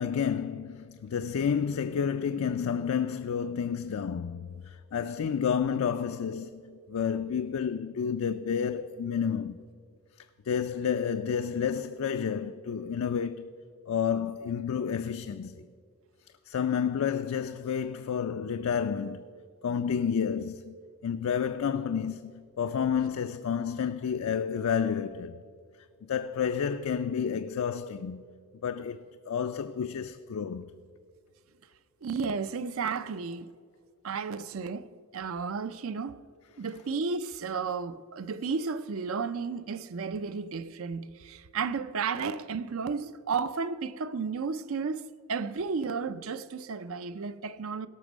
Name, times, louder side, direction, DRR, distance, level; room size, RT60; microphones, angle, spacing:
voice 1, 0.0-9.6 10.5-13.5 13.9-15.7 16.5-19.2 19.6-20.7 21.0-25.3 26.0-28.2 28.6-30.7, left 7 dB, 70° left, 0.4 m, -30 dB
voice 2, 32.0-33.5 34.0-34.9 35.1-36.3 36.6-47.9, right 5 dB, 65° right, 0.5 m, -33 dB
17.0 x 6.1 x 6.2 m
head